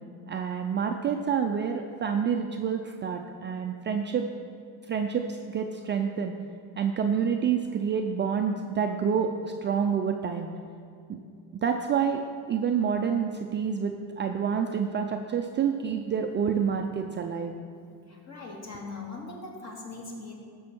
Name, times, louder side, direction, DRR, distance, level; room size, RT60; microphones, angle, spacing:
voice 1, 0.3-4.3 4.9-6.3 6.8-10.5 11.1-11.2 11.6-12.2 12.5-17.5, right 7 dB, 30° right, 4 dB, 0.4 m, -28 dB
voice 2, 18.1-20.3, left 3 dB, 35° left, -1 dB, 2.2 m, -40 dB
14.5 x 6.3 x 4.4 m, 2.5 s
cardioid pair, 135°, 43 cm